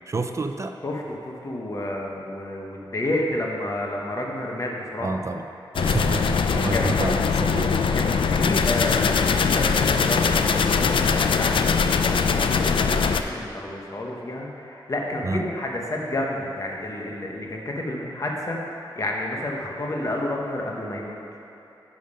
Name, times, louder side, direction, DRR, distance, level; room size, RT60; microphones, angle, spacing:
voice 1, 0.1-0.7 5.0-5.4 5.8-7.9 15.2-15.4, right 3 dB, 35° right, 6 dB, 0.4 m, -29 dB
voice 2, 0.8-5.2 6.7-6.9 7.9-21.2, left 1 dB, 40° left, -1 dB, 1.0 m, -30 dB
sound 1, 5.7-13.2, left 5 dB, 75° left, 0.4 m, -21 dB
10.5 x 5.2 x 5.4 m, 2.9 s
wide cardioid pair, 145°, 9 cm